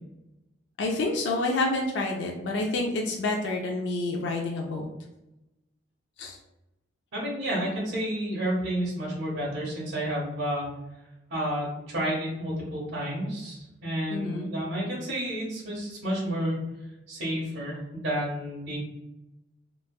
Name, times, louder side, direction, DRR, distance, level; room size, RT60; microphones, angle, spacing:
voice 1, 0.8-4.8 6.2-6.4 14.1-14.5, left 2 dB, 65° left, 0 dB, 0.4 m, -28 dB
voice 2, 7.1-10.7 11.3-16.6 17.1-18.8, equal, 90° right, -5 dB, 1.0 m, -30 dB
3.1 x 2.2 x 2.3 m, 0.94 s
head